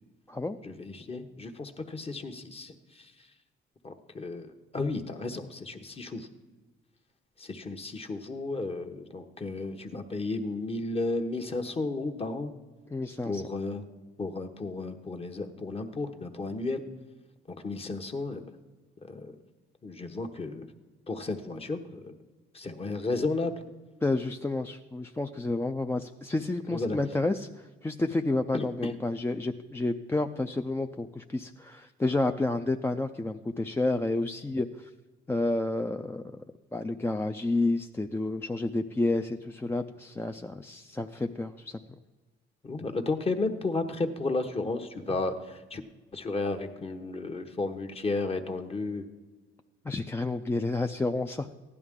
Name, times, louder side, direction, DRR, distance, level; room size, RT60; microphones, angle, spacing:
voice 1, 0.6-3.1 3.8-6.3 7.4-12.5 13.3-13.8 14.2-16.8 17.5-18.5 19.0-19.3 19.8-20.7 21.1-22.1 22.5-23.6 26.7-27.0 28.5-28.9 42.6-45.8 46.1-49.1, left 3 dB, 30° left, 6 dB, 1.1 m, -33 dB
voice 2, 12.9-13.4 24.0-34.9 35.3-36.2 36.7-41.8 49.8-51.5, left 2 dB, 10° left, 6 dB, 0.4 m, -30 dB
15.5 x 11.0 x 3.7 m, 1.3 s
cardioid pair, 90°, 20 cm